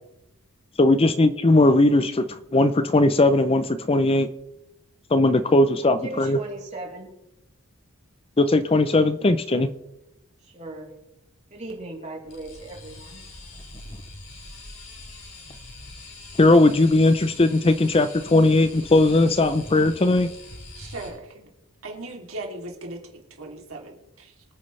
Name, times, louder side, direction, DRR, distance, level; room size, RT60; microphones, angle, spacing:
voice 1, 0.8-4.3 5.1-6.4 8.4-9.7 16.4-20.3, left 2 dB, 25° left, 11 dB, 0.5 m, -18 dB
voice 2, 5.9-7.1 10.4-10.9 11.5-13.2, right 2 dB, 30° right, -2 dB, 3.4 m, -38 dB
sound 1, 12.2-21.1, left 2 dB, 70° left, 6.0 m, -43 dB
voice 3, 20.7-21.5 21.8-24.4, right 2 dB, 70° right, 0 dB, 3.0 m, -38 dB
25.0 x 9.5 x 3.3 m, 0.89 s
head